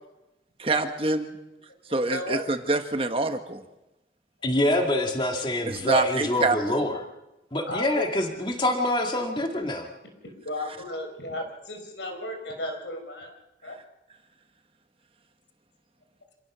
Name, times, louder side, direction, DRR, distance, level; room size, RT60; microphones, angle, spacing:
voice 1, 0.6-1.4 1.9-3.6 5.6-6.8, right 3 dB, 30° right, 6 dB, 1.4 m, -26 dB
voice 2, 2.1-2.4 7.6-8.5 9.4-9.5 10.4-13.3 13.6-13.8, left 1 dB, 85° left, 4 dB, 4.9 m, -34 dB
voice 3, 4.4-7.0 7.5-9.9, left 1 dB, 25° left, 3 dB, 2.1 m, -26 dB
27.0 x 17.0 x 6.2 m, 0.98 s
head